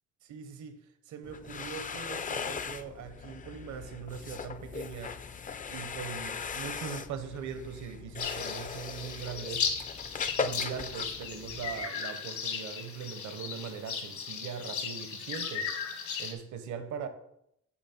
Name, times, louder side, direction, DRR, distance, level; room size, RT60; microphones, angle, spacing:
voice 1, 0.2-0.8 1.1-5.2 5.7-9.7 10.4-15.7 16.2-17.1, right 7 dB, 75° right, 1.0 m, -41 dB
sound 1, 1.2-11.9, left 5 dB, 25° left, 0.4 m, -39 dB
sound 2, 8.2-16.3, left 6 dB, 70° left, 1.4 m, -36 dB
7.2 x 4.7 x 4.3 m
cardioid pair, 90°, 30 cm